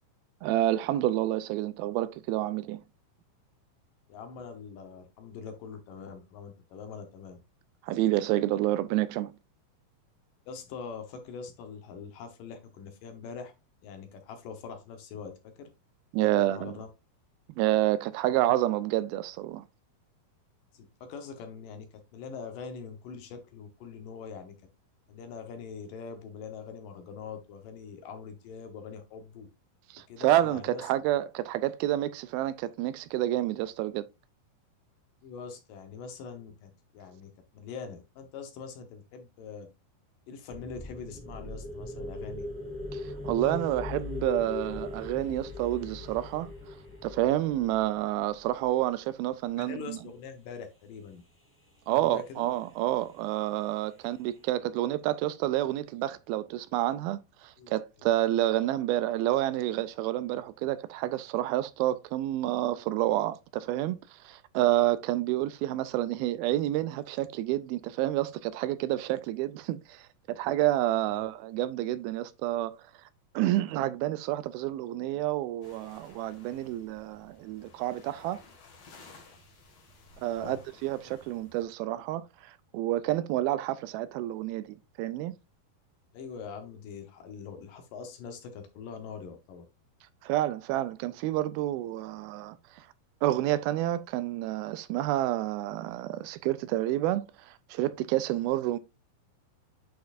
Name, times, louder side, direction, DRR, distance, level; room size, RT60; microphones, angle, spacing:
voice 1, 0.4-2.8 7.8-9.3 16.1-16.8 17.6-19.7 29.9-34.1 42.9-46.5 47.0-50.0 51.9-72.8 73.3-78.4 80.2-85.3 90.2-92.9 93.2-98.8, right 14 dB, 85° right, 2.4 m, -29 dB
voice 2, 4.1-7.4 10.5-13.5 13.8-15.7 16.2-16.9 20.7-24.5 25.1-29.5 30.1-30.9 35.2-39.7 40.3-42.5 49.6-51.2 51.9-52.5 57.6-57.7 71.2-71.3 80.3-80.6 86.1-89.7, left 6 dB, 70° left, 2.6 m, -43 dB
sound 1, 40.5-48.6, left 2 dB, 5° left, 1.0 m, -39 dB
sound 2, 75.6-81.6, left 3 dB, 50° left, 2.8 m, -55 dB
8.5 x 5.8 x 2.5 m
omnidirectional pair, 4.4 m